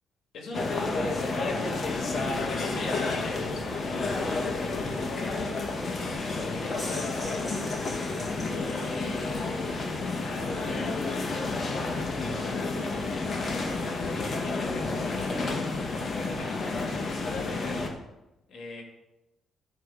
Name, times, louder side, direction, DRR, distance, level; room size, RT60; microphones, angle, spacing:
voice 1, 0.3-1.8 2.3-7.6 8.5-9.7 10.1-10.8 11.1-15.7 16.2-17.8 18.5-18.8, left 3 dB, 65° left, 1 dB, 2.8 m, -40 dB
sound 1, 0.5-17.9, left 3 dB, 40° left, 1.8 m, -30 dB
sound 2, 6.5-9.5, left 1 dB, 20° left, 3.7 m, -43 dB
13.0 x 4.8 x 6.9 m, 0.95 s
cardioid pair, 90°, 0 cm